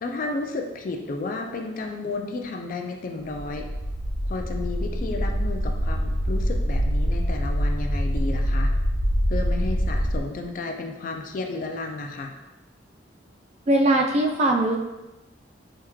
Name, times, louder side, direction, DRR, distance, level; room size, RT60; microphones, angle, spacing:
voice 1, 0.0-3.7 4.2-8.7 9.3-12.3, left 3 dB, 45° left, 3 dB, 0.3 m, -32 dB
sound 1, 3.3-10.2, equal, 70° left, 1.1 m, -25 dB
voice 2, 13.7-14.8, right 1 dB, 35° right, 1 dB, 0.3 m, -20 dB
3.4 x 2.2 x 3.0 m, 0.99 s
head